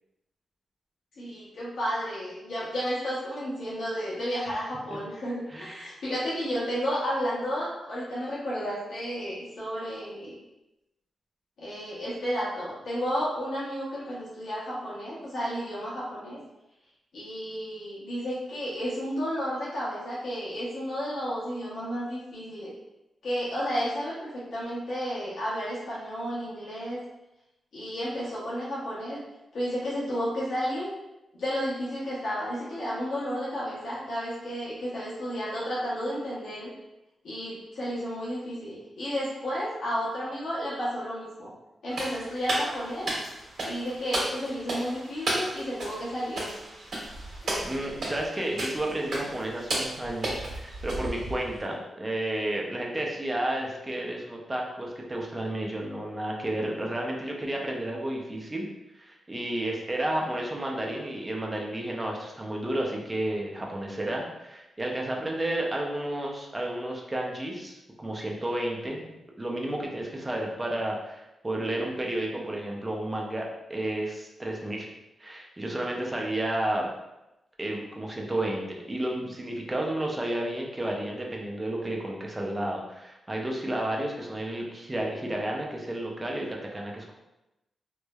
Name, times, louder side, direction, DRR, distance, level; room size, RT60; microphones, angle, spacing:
voice 1, 1.2-10.3 11.6-16.4 17.1-22.7 23.2-27.0 27.7-29.2 29.5-30.9 31.3-36.7 37.2-41.5 41.8-43.1 43.6-46.6 47.4-47.6, equal, 75° left, -8 dB, 0.9 m, -32 dB
voice 2, 5.5-5.9 47.6-58.7 58.9-74.9 75.2-76.9 77.6-87.1, right 1 dB, 15° right, -1 dB, 0.4 m, -32 dB
sound 1, 41.9-51.6, right 1 dB, 65° right, 1.3 m, -34 dB
3.1 x 2.0 x 2.2 m, 0.94 s
wide cardioid pair, 135°, 0 cm